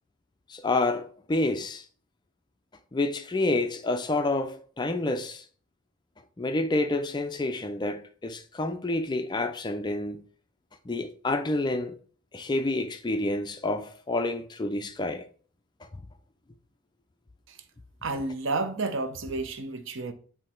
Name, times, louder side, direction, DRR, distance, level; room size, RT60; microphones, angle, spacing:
voice 1, 0.5-1.8 2.9-5.4 6.4-10.2 10.9-11.9 12.3-15.3, left 2 dB, 20° left, 0.4 m, -28 dB
voice 2, 18.0-20.1, right 3 dB, 60° right, 0.7 m, -31 dB
8.5 x 3.2 x 4.3 m
head